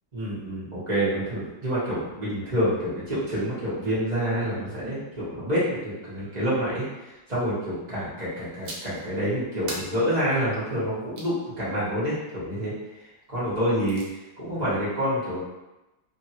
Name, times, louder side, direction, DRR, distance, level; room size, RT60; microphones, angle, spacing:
voice 1, 0.1-6.8 7.3-12.7 13.3-14.0 14.4-15.5, equal, 25° right, -11 dB, 1.1 m, -27 dB
sound 1, 8.6-9.1 9.7-11.4 13.5-14.1, right 2 dB, 75° right, 1.3 m, -40 dB
3.1 x 2.6 x 2.8 m, 1.0 s
omnidirectional pair, 2.0 m